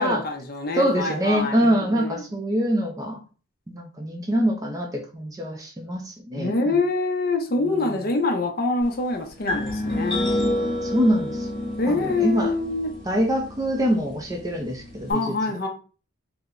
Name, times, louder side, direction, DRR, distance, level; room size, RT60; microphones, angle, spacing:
voice 1, 0.0-2.2 6.3-10.3 11.8-12.9 15.1-15.7, left 3 dB, 45° left, 0.5 m, -25 dB
voice 2, 0.7-3.2 3.7-6.8 7.6-7.9 10.3-10.4 10.8-11.5 11.9-12.5 13.0-15.3, equal, 15° right, 0.4 m, -24 dB
sound 1, 9.5-15.1, left 1 dB, 25° left, 0.9 m, -29 dB
4.7 x 2.1 x 2.5 m
head